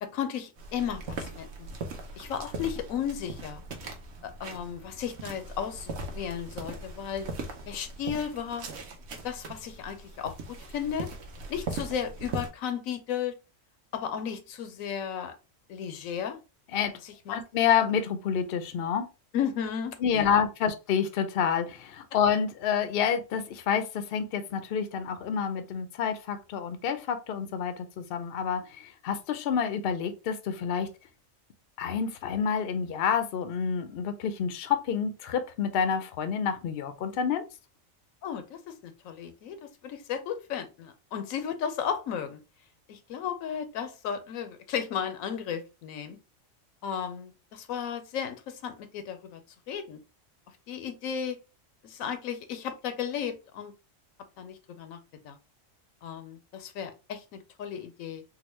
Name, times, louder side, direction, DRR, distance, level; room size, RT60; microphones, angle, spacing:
voice 1, 0.0-1.7 2.2-3.6 4.2-7.3 7.7-8.7 9.2-10.4 10.7-11.1 11.5-13.3 13.9-15.3 15.7-16.4 17.0-17.4 19.3-20.4 38.2-42.4 42.9-46.2 46.8-49.4 49.7-50.0 50.7-51.4 51.8-53.7 54.4-55.0 55.2-55.4 56.0-58.2, left 8 dB, 85° left, 1.0 m, -34 dB
sound 1, 0.6-12.5, right 3 dB, 60° right, 0.9 m, -40 dB
voice 2, 17.3-19.1 20.0-30.9 31.8-37.4, left 7 dB, 60° left, 0.6 m, -28 dB
3.8 x 2.1 x 3.0 m
omnidirectional pair, 1.4 m